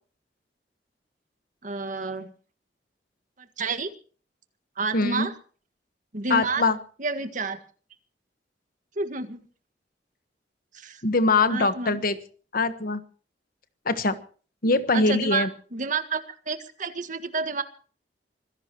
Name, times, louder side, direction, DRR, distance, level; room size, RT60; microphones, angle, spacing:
voice 1, 1.6-2.3 3.4-3.9 4.8-5.3 6.1-6.6 7.0-7.6 9.0-9.4 10.7-11.0 11.5-12.0 14.9-17.6, right 4 dB, 50° right, 9 dB, 1.7 m, -30 dB
voice 2, 4.9-5.3 6.3-6.8 11.0-12.2 12.5-13.0 13.8-14.2 14.6-15.5, left 3 dB, 55° left, 11 dB, 1.3 m, -22 dB
25.5 x 16.5 x 3.0 m, 0.41 s
head